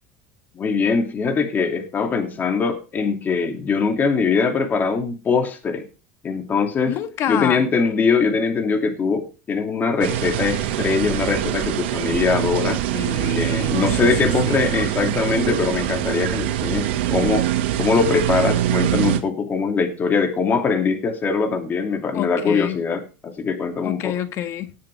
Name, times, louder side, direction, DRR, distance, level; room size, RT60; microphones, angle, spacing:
voice 1, 0.5-5.8 6.2-6.9 7.3-12.8 13.3-17.5 17.8-24.1, left 5 dB, 30° left, 2.6 m, -22 dB
voice 2, 6.9-7.6 12.9-14.7 22.1-22.8 23.8-24.8, left 10 dB, 50° left, 1.6 m, -28 dB
sound 1, 10.0-19.2, right 12 dB, 80° right, 1.8 m, -23 dB
18.5 x 7.5 x 3.5 m
supercardioid pair, 110°, 6 cm